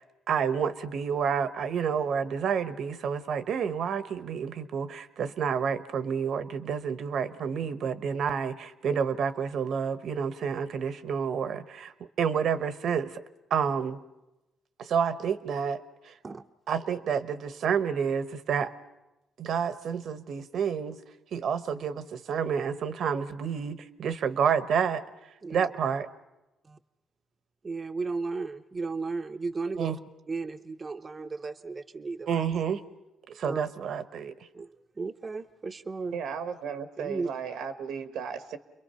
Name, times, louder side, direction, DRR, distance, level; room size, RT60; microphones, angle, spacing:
voice 1, 0.0-13.2 13.5-14.0 14.8-16.2 16.7-18.7 19.4-21.0 21.3-25.0 25.5-26.1 29.8-30.0 32.3-32.8 33.3-34.3, right 7 dB, 65° right, 12 dB, 1.0 m, -29 dB
voice 2, 27.6-29.9 30.3-32.4 33.4-33.6 34.5-36.1 37.0-37.3, right 4 dB, 30° right, 6 dB, 0.7 m, -34 dB
voice 3, 36.1-38.6, right 7 dB, 85° right, 9 dB, 1.4 m, -35 dB
29.5 x 22.0 x 5.7 m, 0.99 s
cardioid pair, 90°, 0 cm